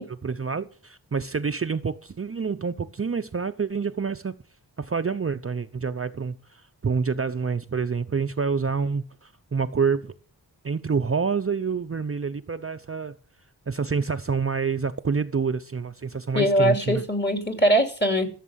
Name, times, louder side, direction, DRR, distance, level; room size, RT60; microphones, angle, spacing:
voice 1, 0.2-4.3 4.8-10.1 10.6-13.1 13.7-17.0, right 5 dB, 35° right, 0.7 m, -27 dB
voice 2, 16.3-18.3, equal, 25° left, 3.1 m, -21 dB
15.0 x 7.4 x 7.4 m
wide cardioid pair, 75°, 41 cm